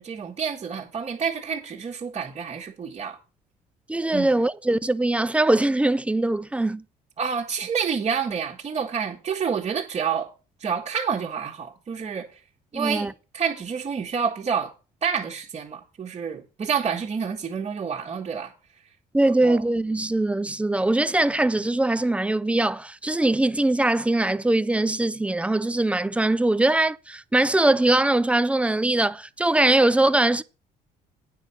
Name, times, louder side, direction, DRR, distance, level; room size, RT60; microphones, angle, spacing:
voice 1, 0.0-3.2 4.1-4.3 7.2-10.3 10.6-12.3 12.7-14.7 15.0-18.5 19.4-19.6, right 6 dB, 35° right, 1.6 m, -28 dB
voice 2, 3.9-6.8 12.7-13.1 19.1-30.4, right 2 dB, 5° right, 0.4 m, -22 dB
9.3 x 5.5 x 6.0 m
cardioid pair, 110°, 17 cm